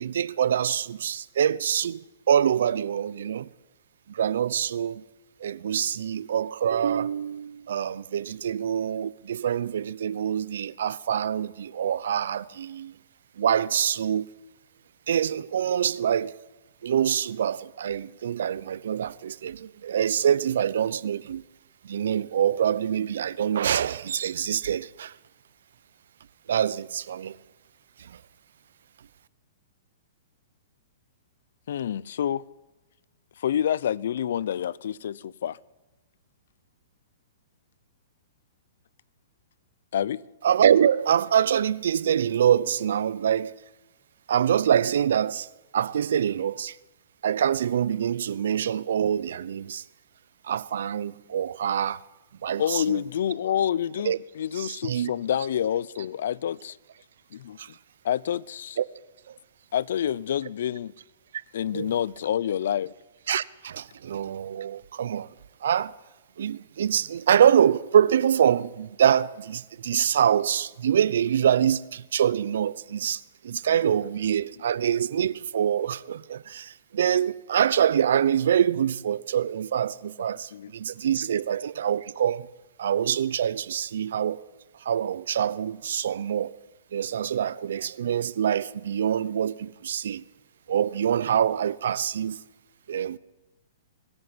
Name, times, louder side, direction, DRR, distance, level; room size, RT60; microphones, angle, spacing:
voice 1, 0.0-3.5 4.1-5.0 5.4-12.9 13.4-14.3 15.1-16.4 16.8-21.4 21.8-25.1 26.5-27.4 28.0-28.2 40.4-43.5 44.3-45.5 45.7-46.8 47.2-49.8 50.4-52.0 52.4-53.0 54.0-54.2 54.6-55.1 57.6-57.7 58.8-58.9 59.3-59.4 61.7-61.9 63.3-65.3 65.6-65.9 66.4-82.5 82.8-84.4 84.8-86.6 86.9-90.2 90.7-92.4 92.9-93.2, right 9 dB, 75° right, 0.8 m, -25 dB
voice 2, 31.7-32.4 33.4-35.6 39.9-40.2 52.6-56.8 57.3-57.6 58.0-58.8 59.7-60.9 61.5-62.9 73.7-73.8 80.5-80.7, left 9 dB, 70° left, 0.7 m, -28 dB
24.5 x 11.0 x 9.8 m
hypercardioid pair, 135°, 0 cm